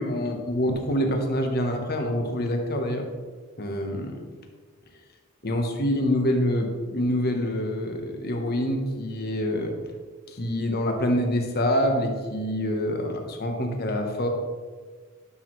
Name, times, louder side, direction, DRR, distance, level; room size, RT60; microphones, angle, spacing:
voice 1, 0.0-3.1 3.6-4.2 5.4-9.7 10.3-14.3, left 1 dB, 50° left, 4 dB, 1.1 m, -26 dB
11.5 x 6.2 x 3.2 m, 1.5 s
head